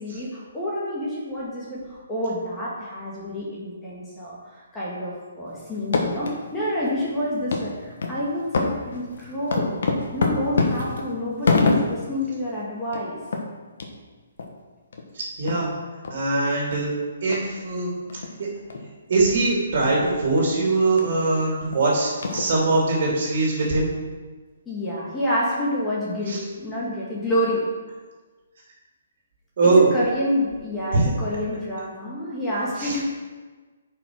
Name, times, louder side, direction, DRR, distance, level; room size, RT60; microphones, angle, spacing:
voice 1, 0.0-9.8 10.1-13.2 24.7-27.6 29.8-33.0, left 1 dB, 10° left, -7 dB, 1.7 m, -28 dB
sound 1, 5.7-6.4 6.8-6.9 7.5-7.7 8.0-8.2 8.5-12.1 12.5-12.6 12.8-13.1 13.3-13.4 13.8-13.9 14.4-14.5 14.9-15.0 15.5-15.6 16.0-16.1 16.7-16.8 17.3-17.4 18.1-18.3 18.7-18.9 19.3-19.4 19.8-20.0 20.4-20.5 21.0-21.1 21.7-21.8 22.2-22.8, left 3 dB, 65° left, 1.5 m, -25 dB
voice 2, 15.1-15.7 16.1-16.9 17.2-17.9 19.1-23.9 26.3-26.4 29.6-29.9 30.9-31.1 32.8-33.0, right 3 dB, 45° right, -3 dB, 2.8 m, -21 dB
10.5 x 5.6 x 4.7 m, 1.4 s
hypercardioid pair, 165°, 0 cm